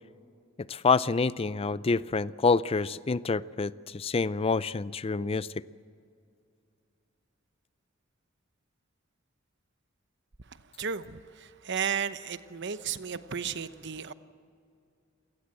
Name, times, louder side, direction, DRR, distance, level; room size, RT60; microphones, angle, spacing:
voice 1, 0.7-5.5, left 4 dB, 30° left, 18 dB, 0.5 m, -27 dB
voice 2, 10.8-11.2 11.7-14.1, right 7 dB, 60° right, 12 dB, 1.0 m, -33 dB
27.5 x 18.5 x 7.7 m, 2.4 s
head